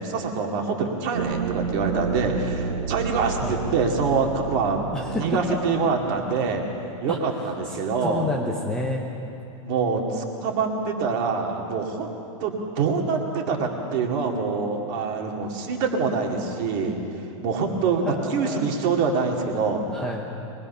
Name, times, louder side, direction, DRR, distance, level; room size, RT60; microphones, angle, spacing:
voice 1, 0.0-6.6 7.0-8.3 9.6-12.1 12.4-17.0 17.4-19.8, right 5 dB, 35° right, 1 dB, 2.2 m, -25 dB
sound 1, 1.1-6.6, right 6 dB, 70° right, 1.5 m, -31 dB
voice 2, 4.9-5.6 7.1-7.2 7.6-9.1 17.8-18.7 19.9-20.3, left 2 dB, 5° left, -2 dB, 0.8 m, -30 dB
24.0 x 20.0 x 5.6 m, 2.9 s
supercardioid pair, 180°, 17 cm